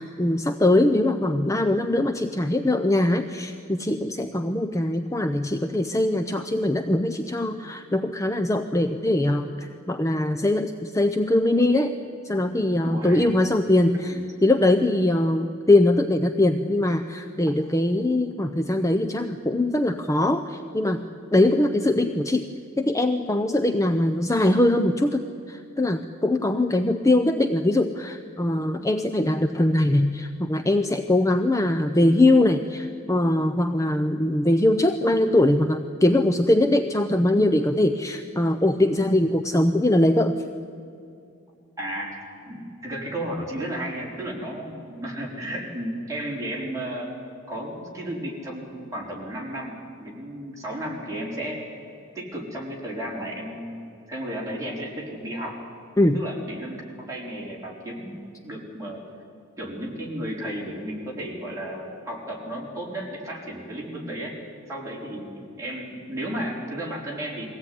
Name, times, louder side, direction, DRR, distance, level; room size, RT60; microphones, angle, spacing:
voice 1, 0.0-12.0 12.2-21.0 21.3-22.5 22.8-40.4 56.0-56.2, left 1 dB, 15° left, 7 dB, 0.6 m, -22 dB
voice 2, 12.8-13.3 14.0-14.2 41.8-47.1 47.5-51.6 52.1-53.8 54.1-55.6 56.1-59.0 59.6-64.4 64.7-67.5, right 1 dB, 15° right, -4 dB, 4.6 m, -33 dB
22.5 x 16.5 x 9.6 m, 2.5 s
head